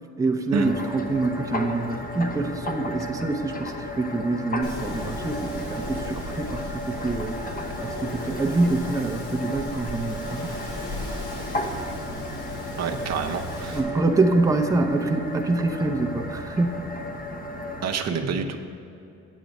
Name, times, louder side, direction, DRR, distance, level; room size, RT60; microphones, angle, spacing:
voice 1, 0.2-7.4 7.8-10.5 13.7-16.9, right 2 dB, 10° right, 3 dB, 0.7 m, -25 dB
sound 1, 0.5-17.9, left 1 dB, 30° left, 0.9 m, -34 dB
Wind, 4.6-13.8, left 1 dB, 80° left, 2.1 m, -36 dB
voice 2, 12.8-13.8 17.8-18.6, right 5 dB, 60° right, 4 dB, 0.8 m, -27 dB
8.3 x 7.5 x 5.2 m, 2.7 s
cardioid pair, 90°, 30 cm